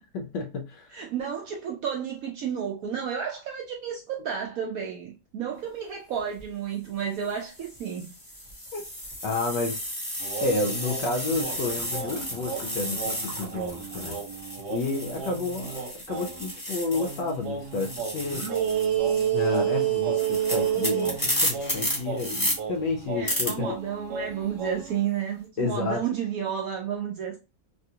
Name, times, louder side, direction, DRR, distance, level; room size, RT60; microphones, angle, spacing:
voice 1, 0.1-1.0 8.7-8.8 9.2-9.9 10.4-14.2 14.7-18.8 19.3-23.8 25.6-26.0, left 3 dB, 75° left, 1.1 m, -31 dB
voice 2, 0.9-8.1 23.1-27.4, right 8 dB, 85° right, 0.7 m, -32 dB
sound 1, 6.2-6.4 7.2-17.3 17.6-22.5 23.3-23.5, equal, 15° left, 1.0 m, -33 dB
sound 2, 10.2-16.5 16.9-25.0, right 8 dB, 65° right, 1.4 m, -31 dB
3.3 x 2.3 x 2.7 m
omnidirectional pair, 2.1 m